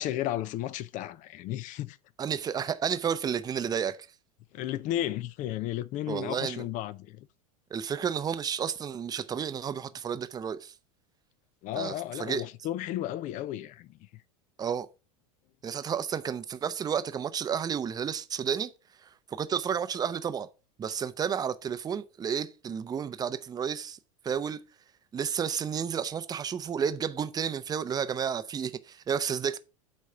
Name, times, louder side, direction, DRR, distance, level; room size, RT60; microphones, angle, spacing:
voice 1, 0.0-2.0 4.5-7.3 11.6-14.0, left 13 dB, 45° left, 0.6 m, -33 dB
voice 2, 2.2-4.0 6.1-6.7 7.7-10.8 11.7-12.4 14.6-14.9 15.6-18.7 19.0-20.5 20.8-24.0 24.2-24.6 25.1-29.6, right 7 dB, 20° right, 0.6 m, -31 dB
8.5 x 3.2 x 5.5 m
hypercardioid pair, 100°, 18 cm